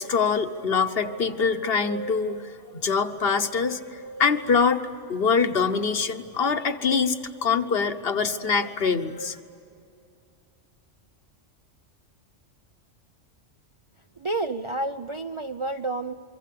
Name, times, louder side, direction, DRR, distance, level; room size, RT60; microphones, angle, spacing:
voice 1, 0.0-4.8 5.1-7.2 7.4-9.4, left 5 dB, 50° left, 9 dB, 1.2 m, -24 dB
voice 2, 14.2-16.1, right 2 dB, 35° right, 6 dB, 0.5 m, -30 dB
27.5 x 23.5 x 8.4 m, 2.6 s
omnidirectional pair, 1.3 m